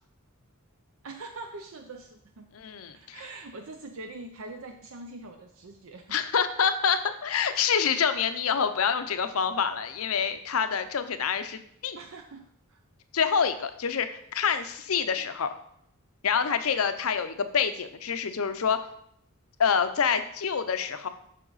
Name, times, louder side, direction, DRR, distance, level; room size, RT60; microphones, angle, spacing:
voice 1, 1.0-2.5 2.9-6.2 11.9-12.8 15.1-15.3, right 3 dB, 70° right, 5 dB, 0.6 m, -43 dB
voice 2, 2.5-3.2 6.1-12.0 13.1-15.5 16.2-18.8 19.6-21.1, left 6 dB, 80° left, 9 dB, 0.6 m, -27 dB
7.5 x 5.8 x 4.0 m, 0.69 s
head